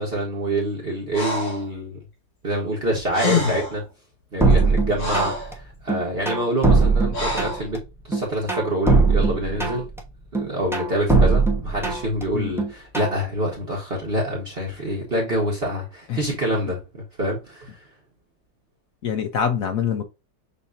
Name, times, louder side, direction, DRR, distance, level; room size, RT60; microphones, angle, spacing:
voice 1, 0.0-2.0 2.4-3.8 4.3-7.8 8.0-9.9 10.3-17.8, right 1 dB, 35° right, 1.4 m, -26 dB
Breathing, 1.1-1.7 2.8-2.9 3.1-3.8 4.5-5.5 7.1-7.6, left 3 dB, 75° left, 3.2 m, -26 dB
sound 1, 4.4-5.5 5.9-7.8 8.1-10.0 10.3-12.2 12.6-13.2, right 3 dB, 5° right, 0.4 m, -20 dB
voice 2, 19.0-20.0, left 7 dB, 60° left, 1.0 m, -24 dB
6.9 x 2.8 x 2.6 m
omnidirectional pair, 2.0 m